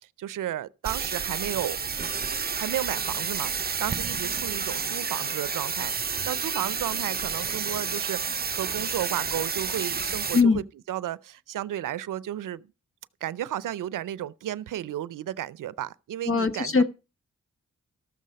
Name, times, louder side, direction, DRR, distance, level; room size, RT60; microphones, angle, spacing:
voice 1, 0.2-1.8 2.5-5.9 6.3-12.7 13.2-16.8, right 12 dB, 90° right, 0.5 m, -33 dB
sound 1, 0.8-10.4, right 5 dB, 30° right, 0.6 m, -30 dB
voice 2, 16.3-16.8, left 4 dB, 45° left, 1.3 m, -21 dB
13.5 x 6.5 x 5.2 m
cardioid pair, 45°, 31 cm